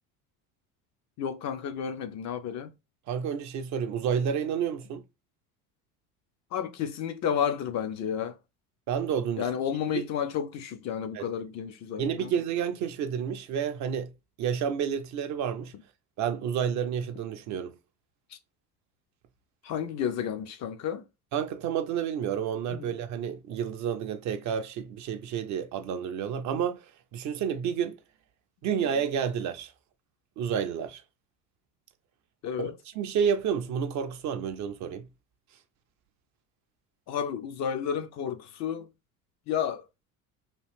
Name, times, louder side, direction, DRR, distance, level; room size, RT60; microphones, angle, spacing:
voice 1, 1.2-2.7 6.5-8.4 9.4-12.3 19.6-21.0 22.8-22.9 28.8-28.9 32.4-32.8 37.1-38.9 39.5-39.8, left 8 dB, 40° left, 0.4 m, -31 dB
voice 2, 3.1-5.0 8.9-9.5 9.9-10.0 11.1-11.3 12.0-14.1 14.4-15.7 16.2-17.7 21.3-28.0 28.6-29.7 30.4-31.0 32.6-35.1, right 8 dB, 40° right, 0.4 m, -30 dB
2.8 x 2.4 x 3.3 m
hypercardioid pair, 65°, 46 cm